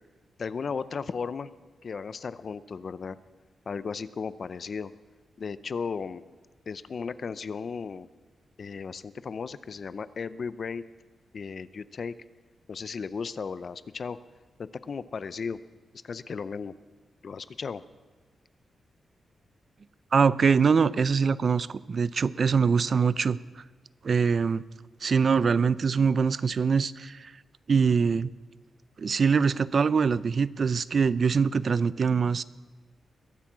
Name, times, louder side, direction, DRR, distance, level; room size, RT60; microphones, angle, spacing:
voice 1, 0.4-1.5 1.8-3.2 3.7-4.9 5.4-6.2 6.7-8.1 8.6-10.8 11.3-12.1 12.7-14.2 14.6-15.6 16.0-16.7 17.2-17.8, left 5 dB, 45° left, 15 dB, 0.6 m, -35 dB
voice 2, 20.1-23.4 24.0-24.6 25.0-27.3 27.7-28.3 29.0-32.4, right 5 dB, 45° right, 18 dB, 0.4 m, -23 dB
22.0 x 8.4 x 6.1 m, 1.3 s
wide cardioid pair, 130°, 0 cm